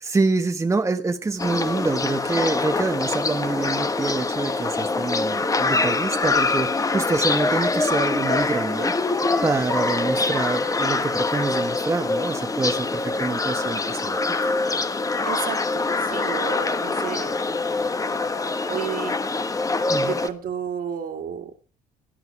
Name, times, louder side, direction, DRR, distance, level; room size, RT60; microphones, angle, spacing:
voice 1, 0.0-8.9 9.4-14.5 19.9-20.2, right 3 dB, 15° right, 1.1 m, -26 dB
sound 1, 1.4-20.3, left 3 dB, 20° left, 1.1 m, -24 dB
Wind instrument woodwind instrument, 5.6-8.7 9.2-12.5, equal, 5° left, 1.4 m, -36 dB
voice 2, 15.3-18.3 18.7-19.3 20.0-21.5, right 8 dB, 55° right, 2.5 m, -33 dB
17.5 x 10.5 x 4.7 m
cardioid pair, 110°, 17 cm